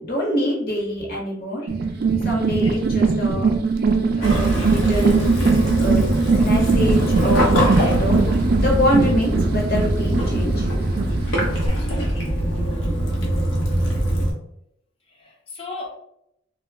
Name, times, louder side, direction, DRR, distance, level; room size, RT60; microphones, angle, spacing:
voice 1, 0.0-1.7 2.2-3.5 4.2-5.2 5.8-6.0 6.3-8.2 8.6-10.7, equal, 55° left, -3 dB, 0.9 m, -25 dB
sound 1, 1.7-11.7, right 4 dB, 50° right, 0.3 m, -20 dB
Waves surf / Splash splatter / Trickle dribble, 4.2-14.3, equal, 85° left, 0.8 m, -23 dB
voice 2, 11.7-12.3 15.2-15.9, left 3 dB, 30° left, 0 dB, 0.5 m, -37 dB
2.2 x 2.0 x 3.3 m, 0.78 s
head